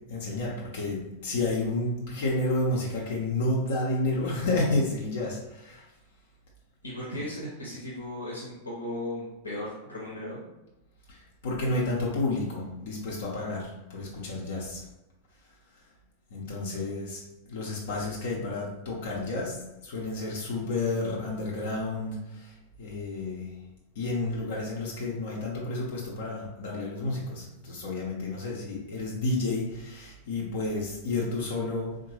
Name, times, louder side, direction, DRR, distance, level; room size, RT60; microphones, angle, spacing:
voice 1, 0.1-5.9 11.1-14.8 16.3-19.6 19.8-22.5 22.8-23.5 23.9-31.9, left 2 dB, 55° left, -4 dB, 0.7 m, -31 dB
voice 2, 6.8-10.4, left 1 dB, 80° left, -5 dB, 0.8 m, -36 dB
3.7 x 2.2 x 3.0 m, 0.97 s
figure-of-eight pair, 90°, 0 cm